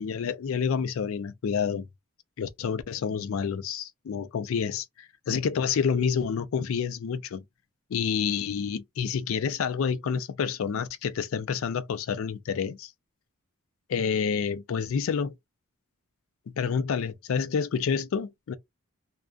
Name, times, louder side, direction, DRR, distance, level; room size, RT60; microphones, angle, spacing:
voice 1, 0.0-1.9 2.4-7.4 7.9-12.9 13.9-15.3 16.6-18.5, left 6 dB, 70° left, 0.4 m, -28 dB
2.4 x 2.2 x 2.3 m
head